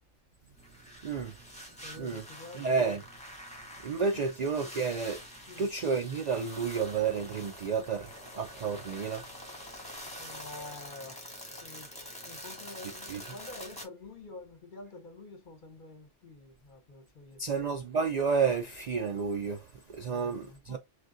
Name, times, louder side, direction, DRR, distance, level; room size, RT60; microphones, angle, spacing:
sound 1, 0.6-13.8, equal, 5° left, 1.2 m, -46 dB
voice 1, 1.0-1.3 2.0-2.2 2.5-3.0 3.8-5.2 5.6-9.2 13.1-13.2 17.4-20.8, right 5 dB, 65° right, 0.4 m, -31 dB
voice 2, 1.8-3.0 4.1-4.3 5.5-5.7 10.2-11.3 11.6-17.8 20.1-20.8, left 3 dB, 45° left, 0.8 m, -48 dB
6.1 x 2.3 x 2.5 m
omnidirectional pair, 1.3 m